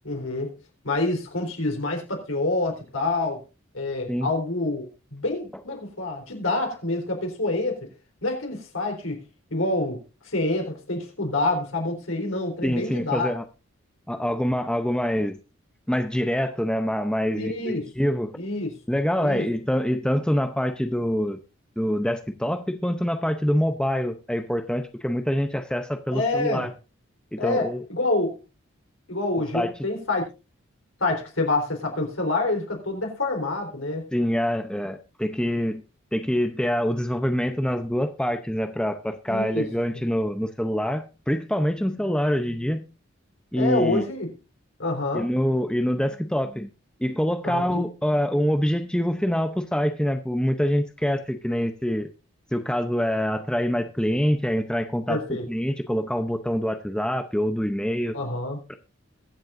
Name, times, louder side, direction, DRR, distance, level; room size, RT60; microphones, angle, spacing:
voice 1, 0.0-0.5 0.8-3.4 3.7-7.9 8.2-9.2 9.5-10.0 10.2-13.3 17.3-17.9 18.4-18.7 19.2-19.4 26.1-26.7 27.4-28.4 29.1-30.2 31.0-34.0 39.3-39.7 43.5-44.3 44.8-45.3 47.4-47.6 55.1-55.5 58.1-58.6, left 2 dB, 85° left, 2 dB, 3.9 m, -27 dB
voice 2, 12.6-13.4 14.1-15.4 15.9-18.3 18.9-21.4 21.8-26.7 27.3-27.8 29.5-29.7 34.1-35.8 36.1-42.8 43.5-44.0 45.1-46.7 47.0-52.1 52.5-58.2 58.7-58.8, equal, 5° left, 7 dB, 0.6 m, -25 dB
22.0 x 7.5 x 2.6 m, 0.30 s
head